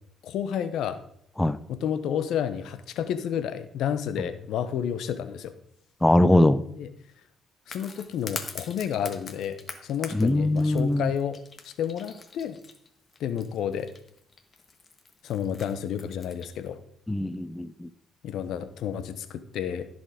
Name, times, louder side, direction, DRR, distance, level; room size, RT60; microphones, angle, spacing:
voice 1, 0.2-1.0 1.7-5.5 6.8-6.9 7.7-9.6 9.8-11.4 11.6-12.6 13.2-13.9 15.2-16.8 18.2-19.9, left 9 dB, 80° left, 12 dB, 0.9 m, -30 dB
voice 2, 6.0-6.6 10.1-11.1 17.1-17.9, left 1 dB, 10° left, 14 dB, 0.5 m, -21 dB
sound 1, 7.7-16.6, left 4 dB, 40° left, 1.4 m, -43 dB
14.5 x 5.4 x 5.1 m, 0.71 s
cardioid pair, 90°, 0 cm